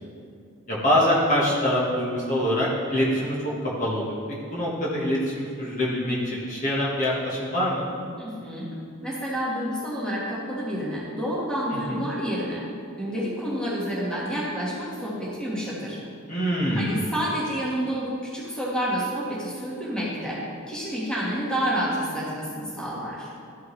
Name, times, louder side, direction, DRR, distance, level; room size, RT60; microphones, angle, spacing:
voice 1, 0.7-3.5 3.8-4.2 4.5-7.8 11.9-12.0 16.3-17.1, equal, 35° left, -6 dB, 1.4 m, -24 dB
voice 2, 8.2-8.7 9.0-12.6 13.0-16.0 16.7-20.4 20.7-23.3, equal, 5° left, -7 dB, 1.6 m, -29 dB
13.0 x 5.9 x 3.2 m, 2.3 s
head